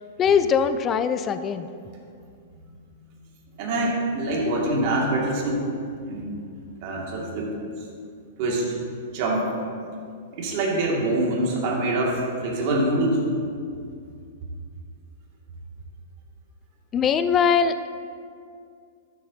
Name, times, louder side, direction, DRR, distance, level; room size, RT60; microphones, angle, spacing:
voice 1, 0.2-1.7 16.9-17.9, left 6 dB, 25° left, 11 dB, 0.4 m, -21 dB
voice 2, 3.6-5.6 6.1-6.4 6.8-7.5 8.4-8.7 9.1-9.5 10.3-13.2, right 1 dB, 50° right, -2 dB, 2.1 m, -24 dB
12.5 x 7.4 x 2.8 m, 2.3 s
hypercardioid pair, 120°, 0 cm